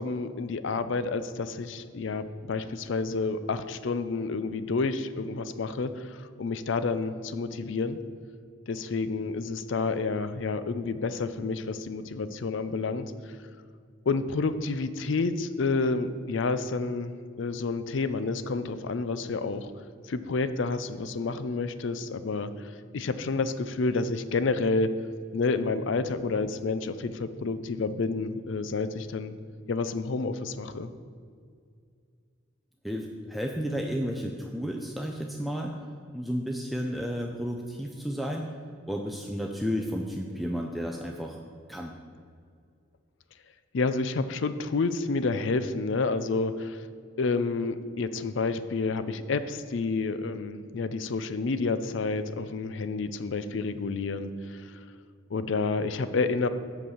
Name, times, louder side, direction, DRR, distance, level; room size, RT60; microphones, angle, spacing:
voice 1, 0.0-8.0 8.7-13.1 14.1-19.7 20.1-24.9 25.3-29.4 29.7-30.9 43.7-46.8 47.2-54.8 55.3-56.5, left 3 dB, 65° left, 12 dB, 0.5 m, -29 dB
voice 2, 32.8-35.8 36.1-38.5 38.9-41.4 41.7-42.0, equal, ahead, 1 dB, 0.4 m, -32 dB
7.8 x 4.8 x 7.1 m, 2.2 s
head